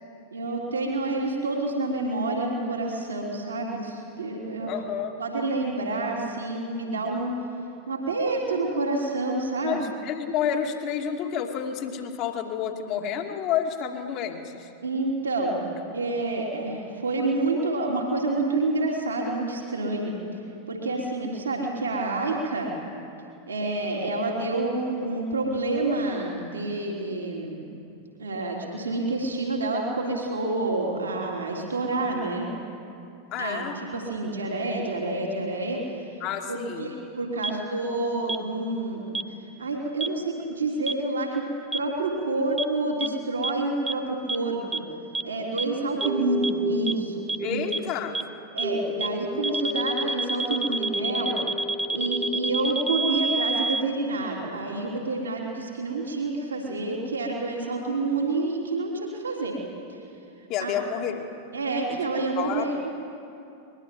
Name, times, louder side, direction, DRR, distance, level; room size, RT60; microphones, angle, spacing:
voice 1, 0.3-4.7 5.2-7.3 7.9-9.8 14.8-15.6 15.9-20.1 20.7-22.7 23.5-27.7 28.2-32.5 33.4-35.9 36.5-39.1 39.6-41.4 41.7-44.8 45.2-47.6 48.5-51.4 51.9-59.6 59.9-60.0 60.6-60.7 61.5-62.9, right 2 dB, 75° right, -1 dB, 3.5 m, -28 dB
voice 2, 4.7-5.1 9.6-14.7 33.3-33.8 36.2-36.9 47.4-48.2 60.5-61.3 61.9-62.0 62.4-62.7, left 8 dB, 40° left, 3 dB, 2.5 m, -29 dB
sound 1, 37.4-37.5 38.3-38.4 39.1-39.2 40.0-40.1 40.9-41.0 41.7-41.8 42.6-42.7 43.0-43.1 43.4-43.5 43.9-44.0 44.3-44.4 44.7-44.8 45.1-45.2 45.6-45.7 46.0-46.1 46.4-46.5 46.9-47.0 47.3-47.4 47.7-47.8 48.1-48.2 48.6-48.7 49.0-49.1 49.4-53.8, right 3 dB, 10° right, 0.7 m, -27 dB
sound 2, 46.0-52.7, equal, 25° right, 2.1 m, -33 dB
22.0 x 22.0 x 7.8 m, 2.7 s
figure-of-eight pair, 90°, 0 cm